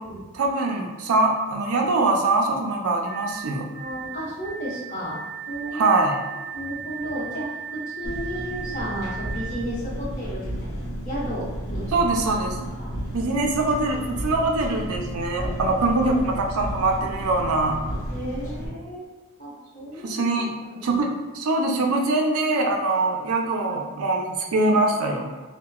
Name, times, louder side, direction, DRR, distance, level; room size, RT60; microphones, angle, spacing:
voice 1, 0.3-3.7 5.7-6.2 11.9-12.7 13.1-17.8 20.0-20.5 20.8-25.3, right 2 dB, 85° right, 2 dB, 0.4 m, -23 dB
sound 1, 3.1-9.5, right 7 dB, 15° right, 0.3 m, -37 dB
voice 2, 3.7-5.9 6.5-12.1 12.6-12.9 18.1-19.1 19.4-20.1 20.3-21.0, equal, 35° left, -8 dB, 0.9 m, -34 dB
Engine, 8.0-18.7, equal, 75° left, 0.7 m, -32 dB
2.8 x 2.1 x 2.3 m, 1.2 s
head